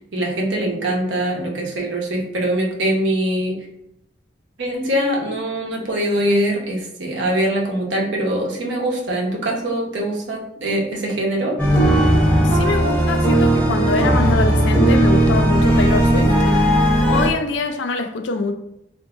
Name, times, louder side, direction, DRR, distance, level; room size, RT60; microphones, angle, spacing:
voice 1, 0.1-3.6 4.6-11.6, right 1 dB, 90° right, 0.8 m, -22 dB
sound 1, 11.6-17.3, right 1 dB, 10° left, 0.9 m, -16 dB
voice 2, 12.4-16.4 17.1-18.5, left 4 dB, 80° left, 0.4 m, -24 dB
3.6 x 2.6 x 2.3 m
head